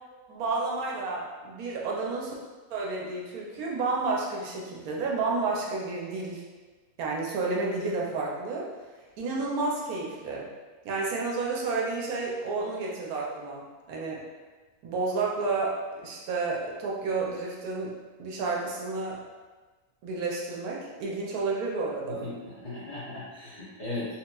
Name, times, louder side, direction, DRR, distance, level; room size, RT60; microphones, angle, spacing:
voice 1, 0.3-2.3 2.7-6.4 7.0-8.7 9.2-10.5 10.8-14.2 14.8-17.9 18.2-19.2 20.0-22.3, right 3 dB, 75° right, -3 dB, 1.0 m, -31 dB
voice 2, 22.1-24.1, left 2 dB, 45° left, -10 dB, 0.7 m, -37 dB
3.0 x 2.9 x 2.2 m, 1.3 s
omnidirectional pair, 1.6 m